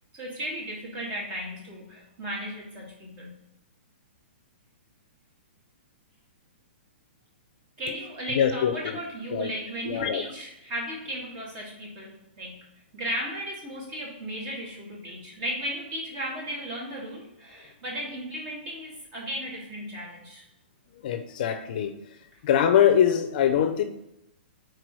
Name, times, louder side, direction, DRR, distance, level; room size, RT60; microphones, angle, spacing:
voice 1, 0.1-3.3 7.8-12.7 12.9-20.4, equal, 30° right, -3 dB, 2.5 m, -35 dB
voice 2, 8.3-9.0 9.3-9.5 9.9-10.2 21.0-21.9 22.4-23.8, left 9 dB, 45° left, 7 dB, 0.6 m, -23 dB
4.7 x 4.7 x 6.1 m, 0.87 s
hypercardioid pair, 160°, 6 cm